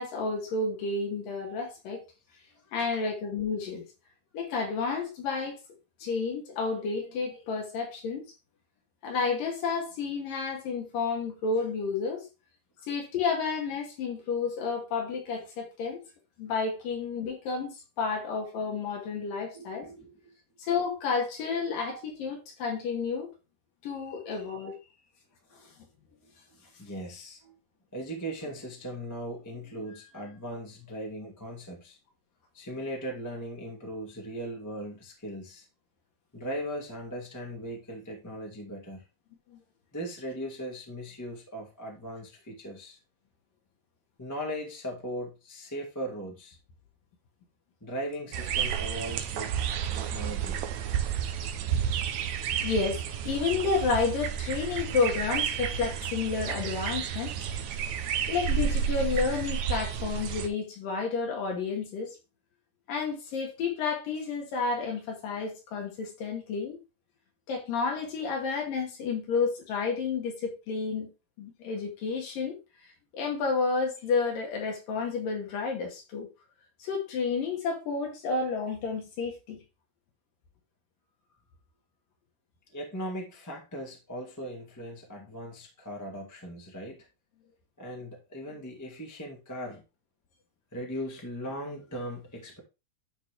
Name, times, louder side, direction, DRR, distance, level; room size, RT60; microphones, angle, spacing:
voice 1, 0.0-2.0 2.7-3.9 4.3-5.6 6.0-8.2 9.0-12.3 12.9-16.0 16.4-19.9 20.6-23.3 23.8-24.8 39.5-39.6 52.6-57.5 58.3-62.1 62.9-66.8 67.5-71.1 71.4-72.6 73.1-76.3 76.8-79.6, left 4 dB, 70° left, 3.6 m, -31 dB
voice 2, 19.5-20.1 25.5-25.7 26.5-27.5 27.9-32.0 32.5-35.6 36.3-39.0 39.9-43.0 44.2-46.6 47.8-49.5 49.9-50.6 60.0-60.1 82.7-87.1 87.8-89.8 90.7-92.6, equal, 10° left, 1.1 m, -38 dB
sound 1, 48.3-60.5, right 8 dB, 75° right, 1.6 m, -31 dB
11.5 x 4.3 x 3.4 m
omnidirectional pair, 4.2 m